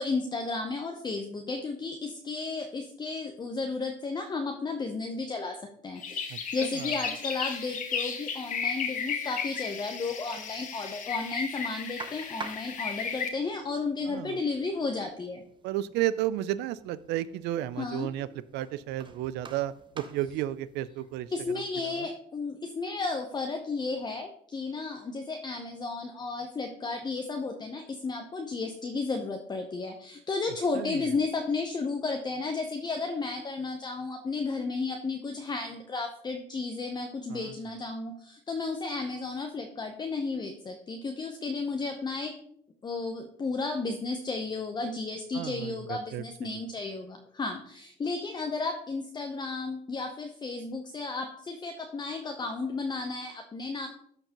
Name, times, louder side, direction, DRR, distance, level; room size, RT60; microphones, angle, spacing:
voice 1, 0.0-15.4 17.8-18.1 21.3-42.4 42.8-53.9, left 3 dB, 25° left, 3 dB, 0.7 m, -33 dB
sound 1, 6.0-13.3, left 6 dB, 50° left, 1.1 m, -34 dB
voice 2, 6.3-6.9 14.1-14.4 15.6-18.3 18.5-22.1 30.7-31.1 37.3-37.5 45.3-46.2, right 13 dB, 85° right, 17 dB, 0.4 m, -33 dB
sound 2, 12.0-21.5, right 5 dB, 30° right, 0.7 m, -49 dB
13.0 x 4.5 x 2.9 m, 0.68 s
cardioid pair, 110°, 17 cm